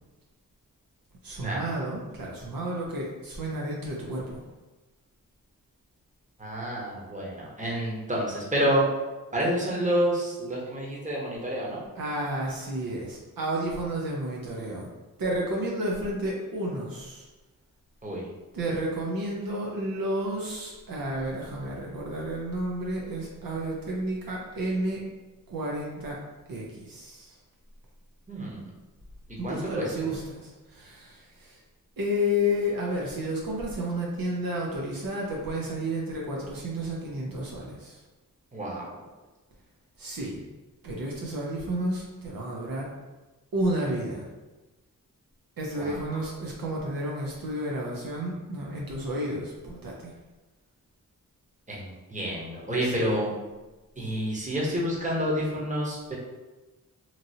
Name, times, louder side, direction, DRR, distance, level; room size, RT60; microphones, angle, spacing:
voice 1, 1.2-4.4 12.0-14.9 15.2-17.3 18.5-25.0 25.5-26.2 26.5-27.4 29.3-31.6 32.0-38.0 40.0-40.4 40.8-42.9 43.5-44.3 45.6-50.1 52.8-53.1, equal, 75° right, -3 dB, 0.7 m, -31 dB
voice 2, 6.4-8.9 9.3-11.8 18.0-18.3 28.3-28.7 29.4-30.1 38.5-39.0 45.8-46.2 51.7-53.3 54.0-56.2, equal, 20° right, -4 dB, 1.0 m, -29 dB
3.0 x 2.6 x 2.7 m, 1.1 s
cardioid pair, 50°, 35 cm